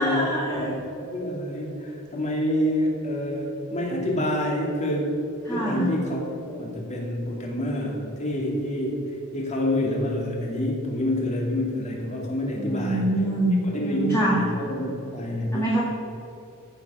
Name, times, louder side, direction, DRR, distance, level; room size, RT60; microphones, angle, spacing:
voice 1, 0.0-0.7 5.5-5.9 12.6-13.5 13.8-14.4 15.5-15.8, right 1 dB, 15° left, -6 dB, 1.8 m, -25 dB
voice 2, 0.5-5.2 5.5-9.0 9.3-13.1 13.6-15.7, left 1 dB, 35° left, -1 dB, 2.3 m, -27 dB
14.5 x 7.3 x 5.4 m, 2.9 s
head